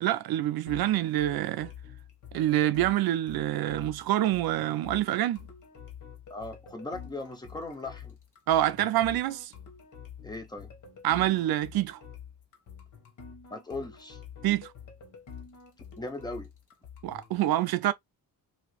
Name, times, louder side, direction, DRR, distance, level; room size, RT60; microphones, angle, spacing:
voice 1, 0.0-1.7 2.3-5.4 8.5-9.5 11.0-12.0 14.4-14.7 17.0-17.9, right 13 dB, 80° right, 0.5 m, -26 dB
sound 1, 0.7-17.4, left 7 dB, 55° left, 1.3 m, -47 dB
voice 2, 6.3-8.1 10.2-10.7 13.5-14.2 16.0-16.5, left 2 dB, 10° left, 0.6 m, -38 dB
3.0 x 2.8 x 3.0 m
wide cardioid pair, 165°, 36 cm